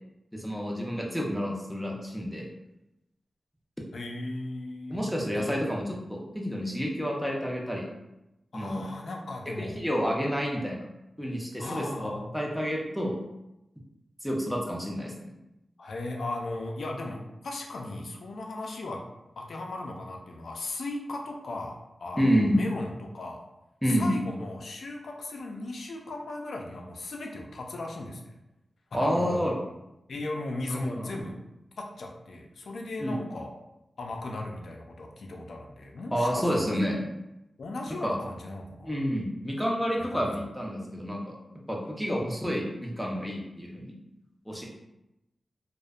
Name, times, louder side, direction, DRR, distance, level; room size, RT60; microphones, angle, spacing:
voice 1, 0.3-2.5 4.9-5.8 6.1-7.9 8.5-8.8 9.6-10.9 11.2-13.2 14.2-15.3 22.2-22.6 23.8-24.1 28.9-29.5 30.7-31.3 33.0-33.2 36.1-37.0 38.0-38.2 38.8-41.4 41.7-43.9 44.5-44.7, equal, ahead, -2 dB, 0.5 m, -29 dB
voice 2, 3.9-5.1 5.4-5.6 8.5-9.8 11.6-12.4 15.8-19.0 19.4-23.4 23.9-28.3 28.9-29.5 30.1-31.3 31.8-33.5 34.0-36.7 37.6-39.0 40.0-40.3 42.1-42.2, left 2 dB, 75° left, 2 dB, 0.4 m, -37 dB
2.5 x 2.1 x 2.3 m, 0.92 s
cardioid pair, 65°, 0 cm